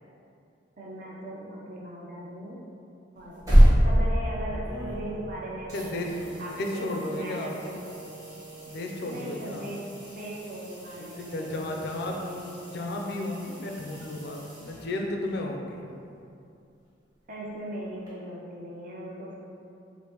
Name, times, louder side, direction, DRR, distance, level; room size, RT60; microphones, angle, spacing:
voice 1, 0.8-2.6 3.2-5.9 6.4-7.8 9.1-12.7 17.3-19.3, right 1 dB, 45° right, -4 dB, 0.6 m, -39 dB
sound 1, 3.2-5.3 5.7-15.3 18.1-18.2, equal, 20° right, 1.0 m, -28 dB
Brass instrument, 3.9-10.0, right 4 dB, 70° right, 0.9 m, -46 dB
voice 2, 5.7-6.1 6.5-7.5 8.7-9.6 11.0-12.1 12.7-15.9, left 1 dB, 60° left, 1 dB, 0.4 m, -33 dB
5.0 x 2.0 x 2.8 m, 2.5 s
head